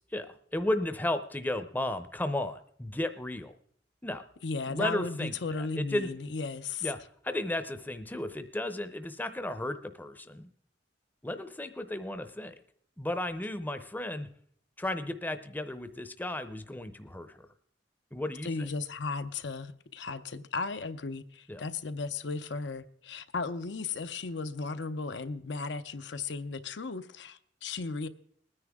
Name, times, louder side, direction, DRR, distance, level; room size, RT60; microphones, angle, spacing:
voice 1, 0.1-3.6 4.0-4.2 4.7-6.1 6.8-7.0 7.2-10.5 11.2-12.6 13.0-14.3 14.8-17.5 18.1-18.7 21.5-21.6, left 1 dB, 10° left, 0.7 m, -34 dB
voice 2, 4.4-6.9 18.4-28.1, left 4 dB, 70° left, 0.6 m, -35 dB
21.0 x 9.8 x 3.6 m
head